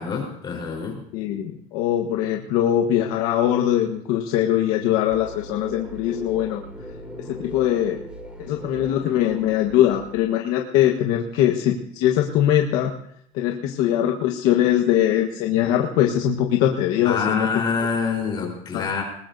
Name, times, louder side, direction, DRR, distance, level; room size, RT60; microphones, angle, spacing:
voice 1, 0.0-1.0 17.0-19.0, left 5 dB, 30° left, 0 dB, 4.1 m, -26 dB
voice 2, 1.1-6.6 7.2-8.0 8.4-13.0 13.3-17.5 18.7-18.9, left 11 dB, 70° left, 2 dB, 1.4 m, -21 dB
sound 1, 5.1-10.2, equal, 5° right, 2.8 m, -39 dB
20.5 x 20.0 x 2.7 m, 0.72 s
cardioid pair, 140°, 16 cm